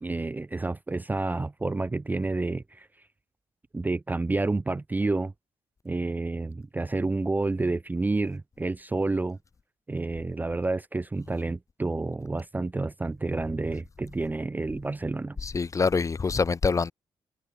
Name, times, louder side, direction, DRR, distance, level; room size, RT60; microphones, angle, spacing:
voice 1, 0.0-2.9 3.7-5.3 5.8-9.4 9.9-15.4, right 3 dB, 15° right, 0.4 m, -29 dB
voice 2, 15.4-16.9, left 4 dB, 30° left, 0.6 m, -25 dB
cardioid pair, 95°, 11 cm